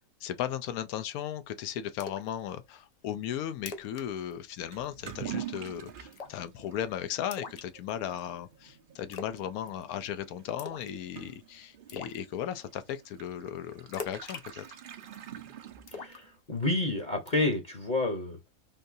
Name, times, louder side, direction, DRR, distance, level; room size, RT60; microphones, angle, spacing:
voice 1, 0.2-14.8, left 10 dB, 90° left, 1.1 m, -36 dB
Splash splatter, 2.0-2.3 2.7-2.8 3.2-3.3 3.6-4.1 4.3-4.5 4.8-5.2 6.1-6.5 7.3-8.2 9.1-9.4 9.7-10.1 10.6-11.0 11.3-11.4 11.9-12.2 13.9-15.2 15.9-16.8 17.3-17.5, left 5 dB, 65° left, 0.4 m, -42 dB
Toilet flush / Liquid, 4.7-16.4, right 11 dB, 65° right, 0.5 m, -46 dB
voice 2, 15.9-18.5, left 2 dB, 40° left, 0.8 m, -30 dB
3.8 x 2.6 x 2.5 m
omnidirectional pair, 1.5 m